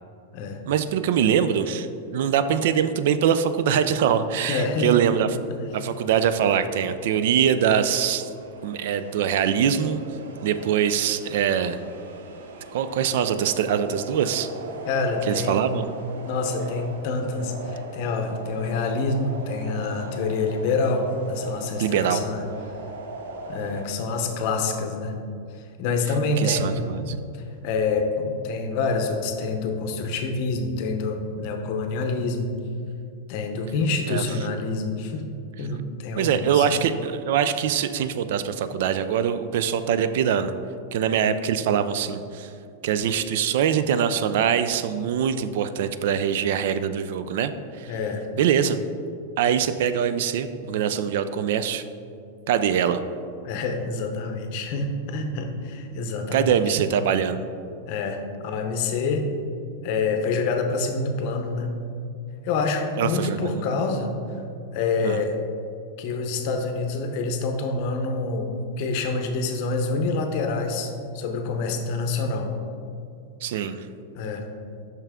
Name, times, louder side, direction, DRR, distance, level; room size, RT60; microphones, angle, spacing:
voice 1, 0.7-5.4 5.7-8.3 8.6-10.0 10.4-11.8 12.7-14.5 15.3-15.9 21.8-22.2 26.4-27.2 34.1-34.2 36.2-40.5 40.9-42.5 42.8-47.9 48.4-48.8 49.4-51.8 52.5-53.0 56.3-57.4 63.0-63.6 65.0-65.2 73.4-73.9, right 8 dB, 60° right, 11 dB, 0.3 m, -23 dB
voice 2, 4.5-4.9 5.6-5.7 14.9-15.7 16.2-22.4 23.5-25.2 25.8-26.7 27.6-28.1 28.4-32.5 33.3-35.3 35.6-36.7 47.9-48.2 53.4-56.7 57.9-59.2 59.8-61.7 62.4-64.1 64.7-65.4 66.0-72.5 74.1-74.4, left 3 dB, 45° left, 4 dB, 0.6 m, -27 dB
sound 1, 5.8-23.8, right 3 dB, 85° right, 0.7 m, -40 dB
5.8 x 5.6 x 3.6 m, 2.5 s
supercardioid pair, 160°, 0 cm